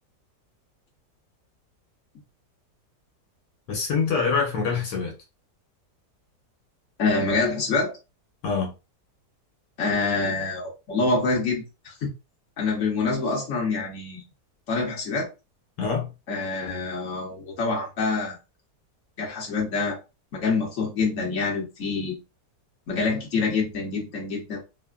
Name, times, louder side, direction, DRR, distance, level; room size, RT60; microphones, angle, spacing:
voice 1, 3.7-5.1 8.4-8.7 15.8-16.1, left 5 dB, 85° left, 1.5 m, -25 dB
voice 2, 7.0-7.9 9.8-12.1 12.6-14.2 14.7-15.3 16.3-18.4 19.2-20.0 20.3-22.2 22.9-24.6, left 3 dB, 50° left, 1.4 m, -26 dB
3.3 x 2.1 x 2.3 m
omnidirectional pair, 1.8 m